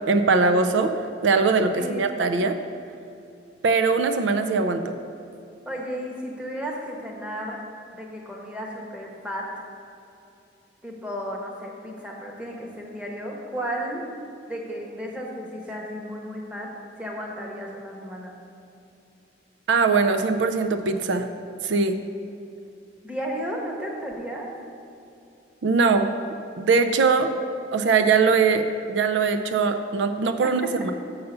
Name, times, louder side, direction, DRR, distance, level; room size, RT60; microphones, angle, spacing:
voice 1, 0.1-0.9 1.2-2.5 3.6-5.0 19.7-21.3 21.6-22.0 25.6-26.1 26.6-27.3 27.7-30.9, right 4 dB, 80° right, 8 dB, 0.4 m, -21 dB
voice 2, 1.7-2.2 5.7-7.6 7.9-9.5 10.8-14.0 14.5-16.7 17.0-18.3 23.0-24.5, equal, 5° right, -1 dB, 1.0 m, -33 dB
6.8 x 5.5 x 6.7 m, 2.7 s
head